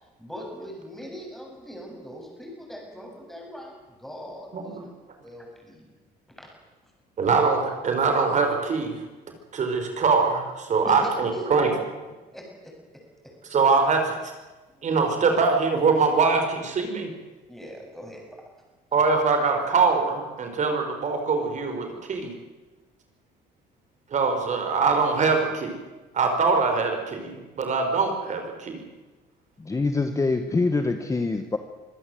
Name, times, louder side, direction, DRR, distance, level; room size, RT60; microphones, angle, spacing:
voice 1, 0.2-4.9 5.2-5.9 6.4-6.5 10.8-11.7 12.3-13.3 14.7-14.9 17.5-18.4, equal, ahead, 0 dB, 8.0 m, -41 dB
voice 2, 7.2-9.0 9.5-11.7 13.5-14.2 14.8-17.1 18.9-22.3 24.1-25.8 26.1-28.8, right 4 dB, 45° right, 5 dB, 4.3 m, -23 dB
voice 3, 29.6-31.6, left 3 dB, 20° left, 7 dB, 1.4 m, -25 dB
25.5 x 15.5 x 7.9 m, 1.2 s
cardioid pair, 110°, 17 cm